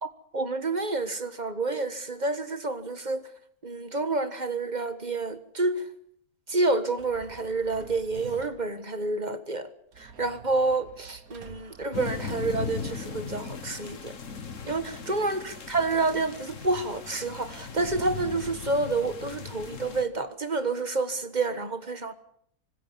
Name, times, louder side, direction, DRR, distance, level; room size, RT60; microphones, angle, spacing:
voice 1, 0.0-3.3 3.6-5.8 6.5-9.7 10.0-14.1 14.6-22.1, right 3 dB, 30° right, 1.5 m, -29 dB
sound 1, 7.0-8.8 9.9-12.8, right 6 dB, 70° right, 2.1 m, -48 dB
sound 2, 11.9-20.0, left 5 dB, 55° left, 2.0 m, -38 dB
25.5 x 19.5 x 7.4 m
omnidirectional pair, 1.6 m